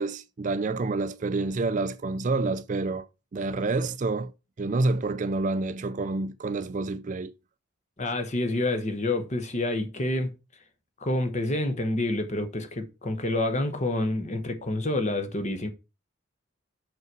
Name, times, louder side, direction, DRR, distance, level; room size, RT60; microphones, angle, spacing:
voice 1, 0.0-3.1 3.3-4.3 4.6-7.3, right 3 dB, 35° right, 0.4 m, -28 dB
voice 2, 8.0-10.3 11.0-15.7, left 2 dB, 35° left, 1.0 m, -28 dB
6.1 x 5.5 x 4.6 m
head